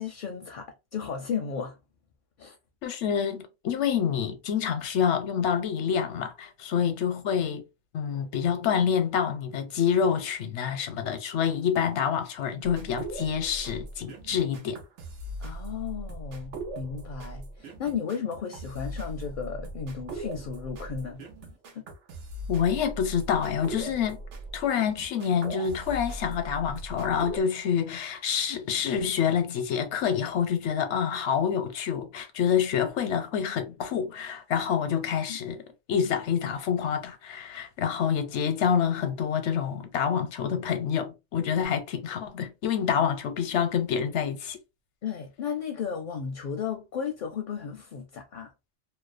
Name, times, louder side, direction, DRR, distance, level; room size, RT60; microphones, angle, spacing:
voice 1, 0.0-1.8 2.4-2.6 6.8-6.9 15.4-21.2 21.7-21.8 35.3-35.4 45.0-48.5, left 7 dB, 60° left, 0.5 m, -34 dB
voice 2, 2.8-7.6 7.9-14.8 22.5-24.2 24.5-44.6, left 8 dB, 85° left, 0.9 m, -27 dB
sound 1, 12.6-27.4, right 2 dB, 90° right, 1.0 m, -39 dB
2.6 x 2.1 x 2.4 m
omnidirectional pair, 1.2 m